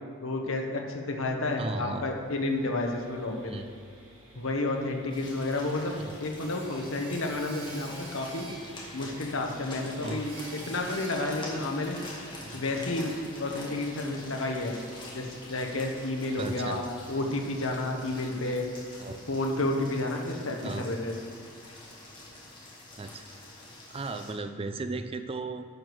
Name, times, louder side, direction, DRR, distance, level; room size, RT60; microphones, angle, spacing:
voice 1, 0.2-3.5 4.3-8.5 8.9-12.0 12.5-13.1 13.4-14.7 15.1-18.7 19.3-21.1, left 2 dB, 65° left, 2 dB, 1.2 m, -31 dB
voice 2, 1.6-2.1 3.4-3.7 6.0-6.2 10.0-10.3 12.4-12.6 16.4-16.9 19.0-19.2 20.6-21.0 23.0-23.2 23.9-25.6, right 3 dB, 25° right, 9 dB, 0.4 m, -36 dB
Sawing, 2.0-19.8, right 1 dB, 65° right, 2.5 m, -52 dB
sound 1, 5.1-24.3, left 1 dB, 20° left, 1.9 m, -45 dB
10.5 x 6.2 x 4.7 m, 2.5 s
head